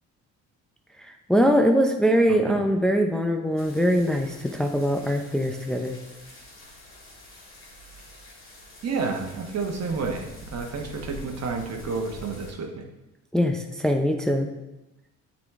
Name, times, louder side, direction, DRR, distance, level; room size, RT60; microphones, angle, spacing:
voice 1, 1.0-5.9 13.3-14.5, equal, ahead, 4 dB, 0.6 m, -22 dB
sound 1, 3.6-12.5, left 1 dB, 45° left, 2.4 m, -46 dB
voice 2, 8.8-12.8, right 4 dB, 55° right, 3 dB, 1.2 m, -30 dB
8.6 x 4.2 x 3.6 m, 0.97 s
cardioid pair, 90°, 30 cm